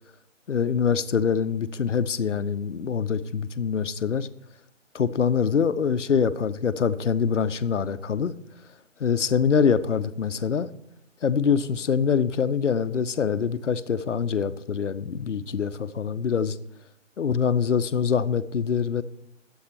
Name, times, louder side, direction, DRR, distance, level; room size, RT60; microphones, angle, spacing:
voice 1, 0.5-4.3 4.9-8.3 9.0-10.7 11.2-16.6 17.2-19.0, left 6 dB, 70° left, 0.7 m, -24 dB
10.0 x 7.9 x 4.4 m
figure-of-eight pair, 165°, 38 cm